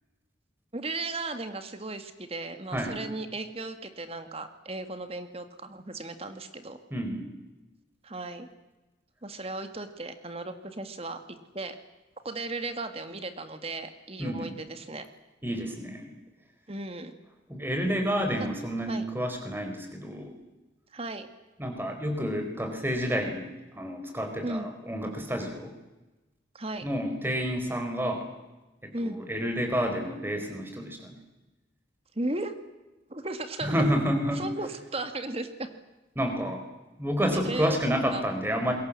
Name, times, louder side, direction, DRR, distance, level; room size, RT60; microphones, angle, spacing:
voice 1, 0.7-6.8 8.0-8.5 9.2-11.2 11.5-11.8 12.2-15.0 16.7-17.1 18.9-19.1 20.9-21.3 24.4-24.7 26.5-26.9 28.9-29.2 32.2-32.5 33.1-33.8 34.4-35.7 37.3-37.8 38.1-38.2, right 2 dB, 30° right, 8 dB, 1.8 m, -35 dB
voice 2, 6.9-7.3 14.2-14.5 15.4-16.2 17.5-20.3 21.6-25.7 26.8-28.3 28.8-31.2 33.6-34.5 36.2-36.6 37.0-38.7, equal, 10° right, 5 dB, 4.7 m, -29 dB
27.5 x 22.5 x 7.6 m, 1.1 s
head